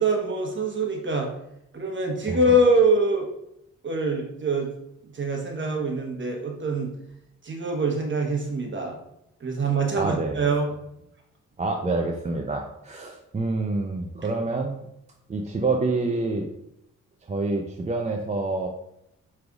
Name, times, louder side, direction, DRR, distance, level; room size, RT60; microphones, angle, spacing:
voice 1, 0.0-1.3 1.7-3.3 3.8-4.7 5.0-6.9 7.4-9.0 9.4-10.7, right 2 dB, 40° right, 1 dB, 1.1 m, -24 dB
voice 2, 10.0-10.4 11.6-14.9 15.3-16.5 17.3-18.7, right 3 dB, 25° right, 2 dB, 0.5 m, -27 dB
5.0 x 3.3 x 2.4 m, 0.80 s
cardioid pair, 70°, 30 cm